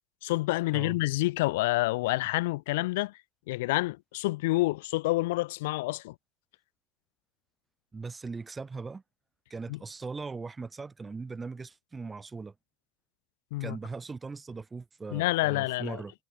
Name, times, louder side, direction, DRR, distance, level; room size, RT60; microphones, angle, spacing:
voice 1, 0.2-3.1 3.5-6.1 9.7-9.8 13.5-13.8 15.1-16.0, left 20 dB, 70° left, 3.4 m, -28 dB
voice 2, 7.9-9.0 9.5-12.5 13.6-16.1, right 4 dB, 20° right, 6.7 m, -39 dB
hypercardioid pair, 90°, 0 cm